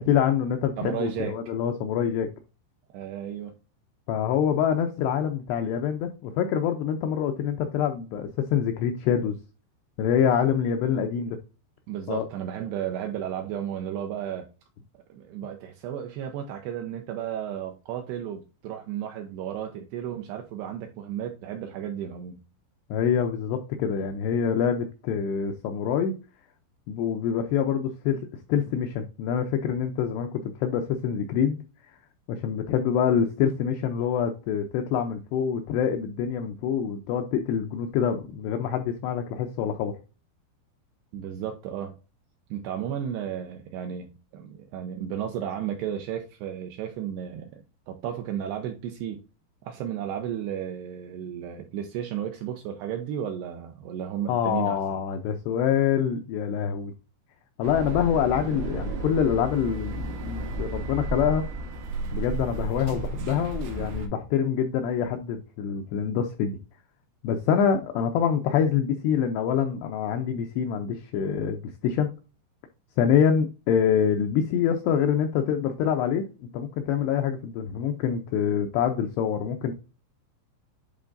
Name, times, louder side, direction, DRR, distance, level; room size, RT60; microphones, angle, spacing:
voice 1, 0.0-2.3 4.1-9.4 10.0-11.4 12.1-12.3 22.9-26.1 26.9-28.2 28.5-31.6 32.3-39.9 54.3-56.9 57.6-61.4 62.1-66.6 67.2-72.1 73.0-79.7, left 8 dB, 90° left, 2.4 m, -25 dB
voice 2, 0.8-1.4 2.9-3.5 11.9-14.5 15.1-22.4 41.1-42.0 42.5-49.2 49.6-54.8, right 10 dB, 85° right, 2.4 m, -33 dB
sound 1, 57.6-64.1, right 3 dB, 65° right, 2.7 m, -33 dB
10.5 x 3.8 x 2.6 m
omnidirectional pair, 5.6 m